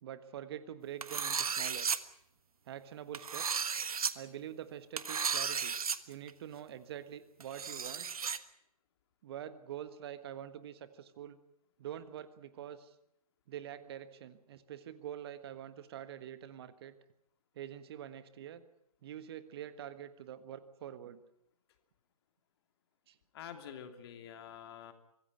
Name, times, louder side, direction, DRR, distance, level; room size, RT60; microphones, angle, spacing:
voice 1, 0.0-1.9 2.7-3.7 4.1-5.7 6.1-8.1 9.2-11.4 11.8-12.9 13.5-16.9 17.5-18.6 19.0-21.2 23.1-23.2, right 10 dB, 40° right, 12 dB, 1.5 m, -45 dB
sound 1, 1.0-2.0 3.1-4.1 5.0-6.0 6.3-6.4 7.4-8.4, right 6 dB, 70° right, 1.5 m, -34 dB
voice 2, 23.3-24.9, left 8 dB, 40° left, 7 dB, 3.0 m, -47 dB
24.5 x 16.5 x 9.2 m, 0.77 s
figure-of-eight pair, 135°, 19 cm